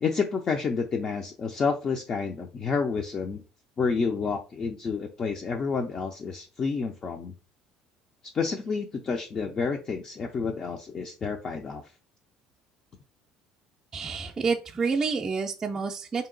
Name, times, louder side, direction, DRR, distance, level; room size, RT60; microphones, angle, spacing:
voice 1, 0.0-3.4 3.8-7.3 8.3-11.8, left 5 dB, 35° left, 4 dB, 0.4 m, -29 dB
voice 2, 13.9-16.3, right 5 dB, 20° right, -1 dB, 0.4 m, -28 dB
3.6 x 2.8 x 3.8 m, 0.34 s
cardioid pair, 115°, 2 cm